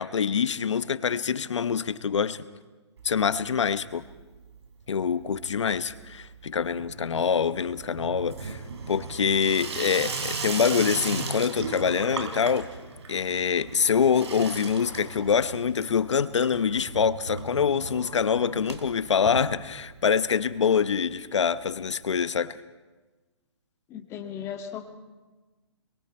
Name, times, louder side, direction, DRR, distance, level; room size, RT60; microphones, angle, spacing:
voice 1, 0.0-2.4 3.0-4.0 4.9-8.6 8.9-12.7 13.1-22.6, left 6 dB, 85° left, 13 dB, 1.0 m, -25 dB
Water tap faucet / Sink (filling or washing), 3.0-3.8 4.0-4.6 4.9-20.2 20.5-20.6 20.8-20.9 21.1-21.2 22.2-22.3, right 4 dB, 70° right, 3.4 m, -37 dB
voice 2, 23.9-25.0, left 8 dB, 20° left, 3 dB, 1.7 m, -37 dB
26.0 x 22.5 x 4.5 m, 1.2 s
hypercardioid pair, 150°, 15 cm